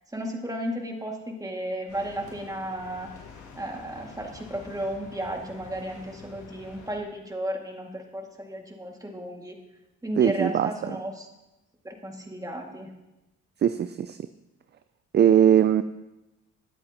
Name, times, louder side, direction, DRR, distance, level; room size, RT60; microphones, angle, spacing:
voice 1, 0.1-3.1 3.6-9.6 10.0-11.3 11.8-12.9, right 1 dB, 10° right, 1 dB, 2.0 m, -34 dB
sound 1, 1.9-7.0, left 3 dB, 80° left, 3.2 m, -47 dB
voice 2, 10.2-10.7 13.6-14.2 15.1-15.8, right 9 dB, 35° right, 12 dB, 0.4 m, -20 dB
21.0 x 7.9 x 2.9 m, 1.0 s
cardioid pair, 90°, 30 cm